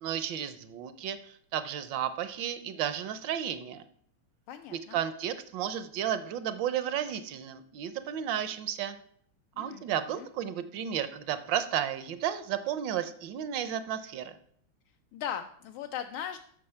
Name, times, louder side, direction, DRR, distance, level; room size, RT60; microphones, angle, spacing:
voice 1, 0.0-3.8 4.7-9.0 9.6-14.3, right 9 dB, 70° right, 12 dB, 1.2 m, -33 dB
voice 2, 4.5-5.0 9.6-9.8 10.2-10.3 15.1-16.4, left 9 dB, 80° left, 6 dB, 1.4 m, -38 dB
7.6 x 6.3 x 5.6 m, 0.65 s
omnidirectional pair, 2.4 m